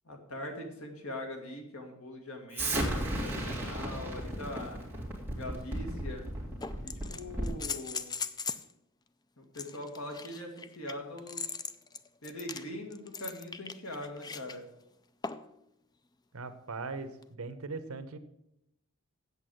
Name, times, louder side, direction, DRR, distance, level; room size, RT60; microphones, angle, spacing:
voice 1, 0.0-4.8 5.3-6.3 6.8-8.1 9.4-11.5 12.2-14.6, left 1 dB, 70° left, 3 dB, 2.0 m, -42 dB
Explosion, 2.5-7.7, right 1 dB, 10° right, 2.3 m, -35 dB
sound 1, 5.6-5.7 6.6-8.7 9.5-14.6 15.2-15.6 17.2-17.3, left 5 dB, 20° left, 0.4 m, -40 dB
voice 2, 16.3-18.2, right 3 dB, 80° right, 10 dB, 1.0 m, -40 dB
8.4 x 7.7 x 7.7 m, 0.82 s
head